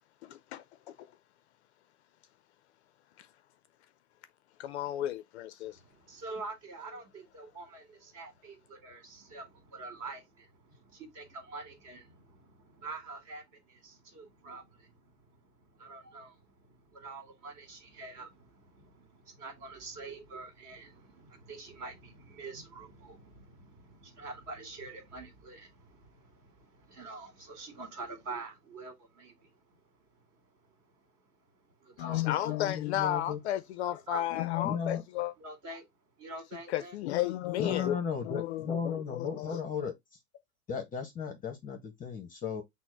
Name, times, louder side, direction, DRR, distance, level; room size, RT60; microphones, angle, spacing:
voice 1, 0.2-1.1 3.2-3.3 4.6-5.8 32.0-35.3 36.7-38.0 38.2-39.6, left 13 dB, 50° left, 0.4 m, -33 dB
voice 2, 5.6-31.2 31.5-32.6 34.1-34.4 35.4-35.9 36.2-36.9, right 3 dB, 45° right, 2.2 m, -46 dB
voice 3, 32.5-33.4 34.6-35.0 37.6-40.2 40.7-42.6, left 6 dB, 20° left, 0.7 m, -35 dB
6.0 x 2.1 x 4.2 m
hypercardioid pair, 105°, 45 cm